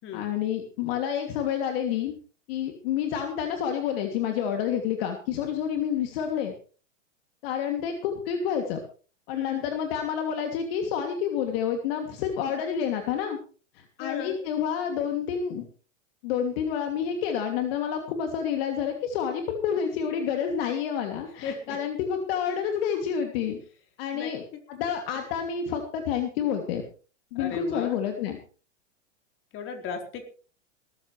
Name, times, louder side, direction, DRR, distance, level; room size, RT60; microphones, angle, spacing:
voice 1, 0.1-2.2 2.5-6.5 7.4-8.8 9.3-13.4 13.7-15.7 16.2-23.6 24.0-24.4 24.7-26.8 27.3-28.4, left 8 dB, 50° left, 4 dB, 2.8 m, -29 dB
voice 2, 9.3-9.7 14.0-14.4 21.4-21.8 24.1-24.3 27.3-28.0 29.5-30.2, left 6 dB, 35° left, 4 dB, 4.3 m, -36 dB
20.0 x 14.0 x 3.4 m, 0.39 s
hypercardioid pair, 115°, 37 cm